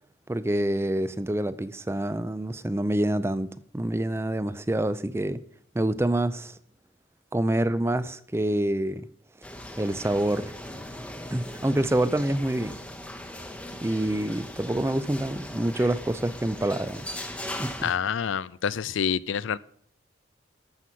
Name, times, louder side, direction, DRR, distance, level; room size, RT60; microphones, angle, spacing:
voice 1, 0.3-5.4 5.7-6.6 7.3-9.1 9.8-10.5 11.3-12.7 13.8-17.0 17.6-17.9, right 1 dB, 15° right, 0.4 m, -27 dB
sound 1, 9.4-17.9, left 1 dB, 5° left, 0.9 m, -39 dB
voice 2, 17.8-19.6, left 7 dB, 80° left, 0.4 m, -27 dB
12.0 x 7.7 x 5.7 m
head